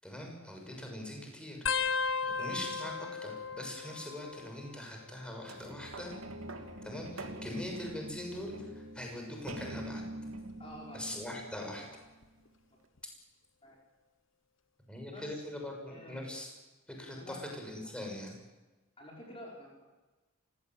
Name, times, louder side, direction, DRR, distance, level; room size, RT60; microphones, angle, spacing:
voice 1, 0.0-6.2 6.8-10.0 10.9-11.9 14.9-16.5 16.9-18.3, left 1 dB, 5° left, 1 dB, 6.6 m, -42 dB
sound 1, 1.7-4.8 5.1-5.7 6.7-8.2 8.8-9.1 10.4-10.7 12.2-12.3, left 5 dB, 65° left, 1.2 m, -37 dB
sound 2, 5.4-12.2 12.8-12.9, right 1 dB, 85° right, 2.6 m, -45 dB
voice 2, 10.6-11.0 11.6-11.9 13.6-13.8 15.1-15.3 15.9-16.3 17.2-17.4 19.0-19.8, left 1 dB, 25° left, -2 dB, 5.6 m, -49 dB
28.0 x 17.0 x 9.3 m, 1.2 s
head